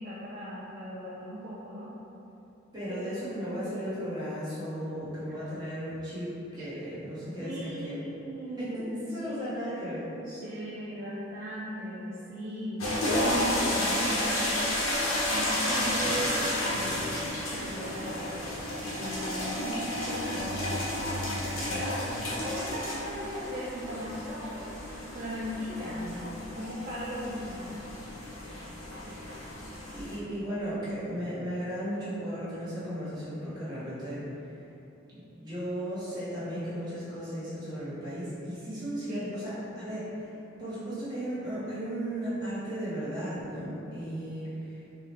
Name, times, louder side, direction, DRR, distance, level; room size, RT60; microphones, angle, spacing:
voice 1, 0.0-1.9 2.9-3.0 7.4-9.6 9.9-14.5 15.3-16.3 16.6-17.0 17.5-18.5 18.8-27.7 29.0-29.2 39.1-39.3, equal, 40° right, -8 dB, 0.4 m, -38 dB
voice 2, 2.7-8.0 8.6-8.7 9.1-10.0 16.0-16.2 29.3-29.4 29.9-34.2 35.4-40.3 40.6-44.8, equal, 20° right, -12 dB, 1.2 m, -35 dB
sound 1, 12.8-30.2, left 1 dB, 85° left, 1.0 m, -32 dB
3.9 x 2.9 x 3.2 m, 3.0 s
head